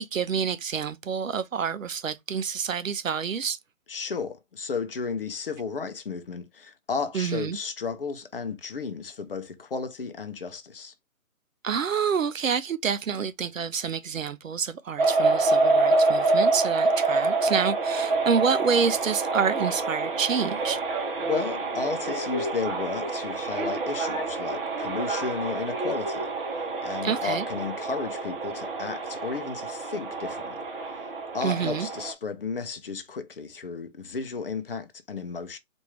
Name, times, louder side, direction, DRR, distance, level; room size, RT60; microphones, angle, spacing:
voice 1, 0.0-3.6 7.1-7.6 11.6-20.8 27.0-27.4 31.4-31.9, right 6 dB, 65° right, 0.7 m, -28 dB
voice 2, 3.9-10.9 21.2-26.3 26.8-30.6 31.3-35.6, left 5 dB, 40° left, 0.7 m, -33 dB
sound 1, 15.0-32.1, right 3 dB, 40° right, 1.2 m, -27 dB
4.3 x 2.6 x 3.2 m
figure-of-eight pair, 145°, 42 cm